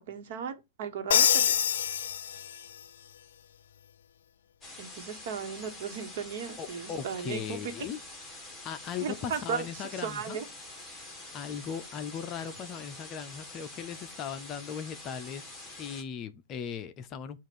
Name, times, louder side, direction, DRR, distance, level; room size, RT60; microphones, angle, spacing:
voice 1, 0.0-1.5 4.8-7.7 9.0-10.4, right 7 dB, 60° right, 1.2 m, -36 dB
Crash cymbal, 1.1-2.8, left 9 dB, 85° left, 0.3 m, -26 dB
sound 1, 4.6-16.0, left 2 dB, 5° left, 1.4 m, -46 dB
voice 2, 6.6-8.0 8.6-10.4 11.3-15.4 15.8-17.4, left 8 dB, 30° left, 0.5 m, -38 dB
7.4 x 2.5 x 5.3 m
hypercardioid pair, 150°, 0 cm